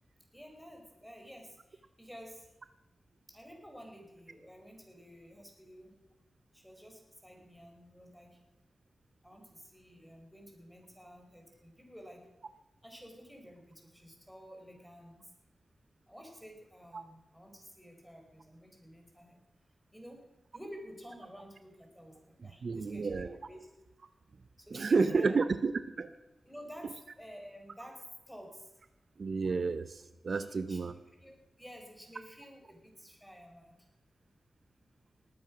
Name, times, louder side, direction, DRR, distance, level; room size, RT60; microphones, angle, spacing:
voice 1, 0.3-2.5 3.3-5.9 6.5-8.4 9.2-12.2 12.8-15.2 16.1-19.4 19.9-20.2 20.5-23.7 24.6-25.4 26.4-28.7 30.3-30.8 31.2-33.7, equal, ahead, 2 dB, 4.5 m, -51 dB
voice 2, 22.6-23.4 24.7-25.7 26.0-26.1 29.2-30.9, right 4 dB, 65° right, 12 dB, 0.7 m, -30 dB
19.5 x 8.9 x 6.1 m, 1.0 s
cardioid pair, 60°, 0 cm